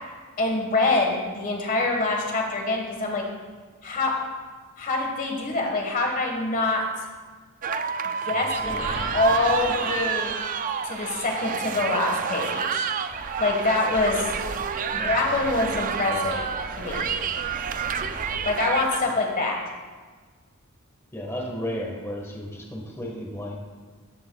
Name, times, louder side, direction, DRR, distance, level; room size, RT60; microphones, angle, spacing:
voice 1, 0.4-3.2 3.8-4.1 4.8-6.8 8.0-8.8 9.1-10.3 10.8-12.9 13.4-14.2 14.9-16.4 16.8-17.2 18.4-19.6, left 2 dB, 40° left, 1 dB, 1.5 m, -25 dB
sound 1, 7.6-19.0, right 7 dB, 40° right, 0.4 m, -29 dB
voice 2, 8.3-9.2 14.9-15.4 15.7-16.4 21.1-23.6, equal, 15° left, -1 dB, 1.4 m, -35 dB
sound 2, 8.5-18.6, right 1 dB, 75° right, 2.5 m, -39 dB
13.5 x 11.5 x 2.3 m, 1.5 s
head